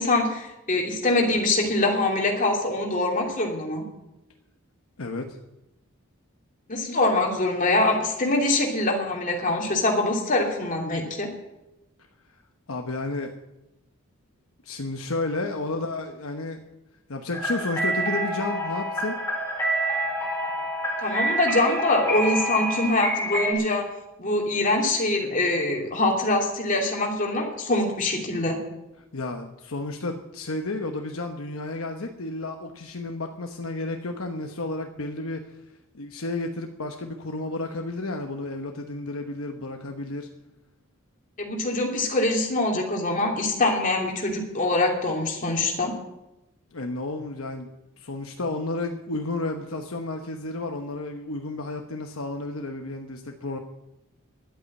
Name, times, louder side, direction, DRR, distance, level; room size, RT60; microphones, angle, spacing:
voice 1, 0.0-3.8 6.7-11.3 21.0-23.9 24.2-28.6 41.4-45.9, left 2 dB, 40° left, 1 dB, 2.8 m, -24 dB
voice 2, 5.0-5.4 12.7-13.3 14.6-16.6 17.1-19.2 29.1-35.4 35.9-40.3 46.7-47.7 48.0-53.6, left 2 dB, 70° left, 4 dB, 1.1 m, -32 dB
sound 1, 17.3-23.5, right 1 dB, 10° left, 4.7 m, -27 dB
11.5 x 8.6 x 9.6 m, 0.95 s
head